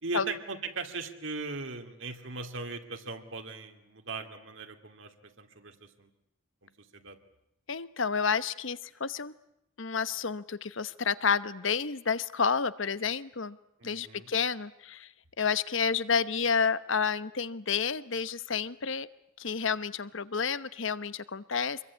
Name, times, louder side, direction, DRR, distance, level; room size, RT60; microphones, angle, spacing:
voice 1, 0.0-6.1 6.6-7.2 13.8-14.3, right 3 dB, 65° right, 5 dB, 2.6 m, -39 dB
voice 2, 7.7-9.3 9.8-13.6 13.8-15.1 15.4-19.1 19.4-21.8, left 6 dB, 65° left, 15 dB, 1.0 m, -30 dB
26.5 x 22.5 x 9.6 m, 0.83 s
head